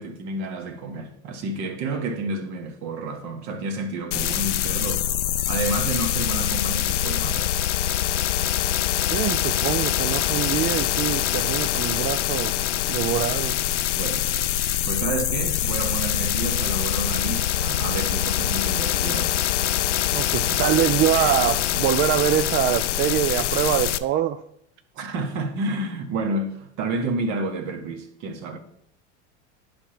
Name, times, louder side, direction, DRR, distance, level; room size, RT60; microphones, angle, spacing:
voice 1, 0.0-5.1 5.5-7.5 14.0-14.5 14.8-19.3 24.9-28.6, right 2 dB, 55° right, 1.5 m, -30 dB
sound 1, 4.1-24.0, left 12 dB, 90° left, 0.5 m, -24 dB
voice 2, 9.1-12.6 12.9-13.6 20.1-24.4, right 11 dB, 35° right, 0.4 m, -24 dB
9.7 x 3.5 x 5.7 m
hypercardioid pair, 100°, 35 cm